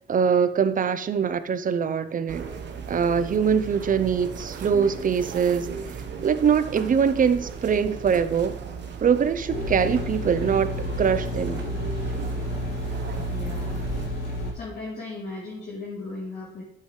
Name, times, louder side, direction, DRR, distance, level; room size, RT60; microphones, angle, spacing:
voice 1, 0.1-2.5 2.9-5.8 6.2-8.6 9.0-11.6, right 7 dB, 45° right, 0.6 m, -23 dB
sound 1, 2.3-14.1, right 6 dB, 60° right, 1.2 m, -37 dB
sound 2, 9.5-14.5, left 1 dB, 85° left, 3.6 m, -31 dB
voice 2, 13.3-13.9 14.5-16.6, left 3 dB, 50° left, 3.0 m, -36 dB
9.5 x 7.5 x 3.2 m
cardioid pair, 90°, 20 cm